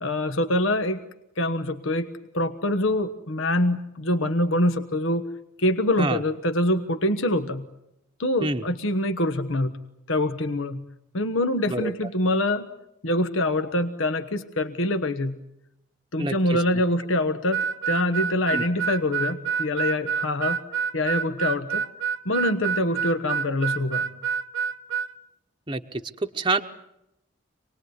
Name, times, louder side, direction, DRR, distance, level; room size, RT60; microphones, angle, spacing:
voice 1, 0.0-1.0 1.4-5.3 5.6-7.7 8.2-9.8 10.1-10.8 11.1-12.7 13.0-15.4 16.1-20.6 20.9-21.9 22.2-24.1, left 1 dB, 80° left, 9 dB, 1.3 m, -25 dB
voice 2, 16.2-16.6 18.5-18.6 25.7-26.6, right 2 dB, 20° right, 5 dB, 0.9 m, -27 dB
Harmonica, 17.5-25.1, right 7 dB, 75° right, 1.0 m, -27 dB
27.0 x 20.0 x 9.6 m, 0.84 s
head